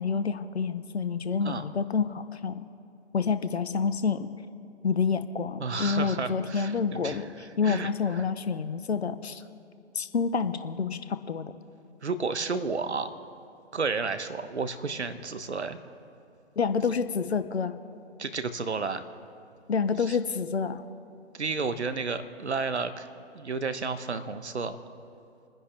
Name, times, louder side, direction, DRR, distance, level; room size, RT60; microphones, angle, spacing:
voice 1, 0.0-2.6 3.1-4.3 4.8-7.3 7.6-9.4 9.9-11.5 16.6-17.7 19.7-20.8, left 5 dB, 65° left, 11 dB, 0.9 m, -28 dB
voice 2, 5.6-8.2 12.0-13.1 13.7-15.8 18.2-19.0 20.0-20.2 21.3-23.1 23.3-24.8, right 4 dB, 75° right, 11 dB, 1.1 m, -32 dB
29.5 x 10.5 x 3.4 m, 2.7 s
figure-of-eight pair, 130°, 34 cm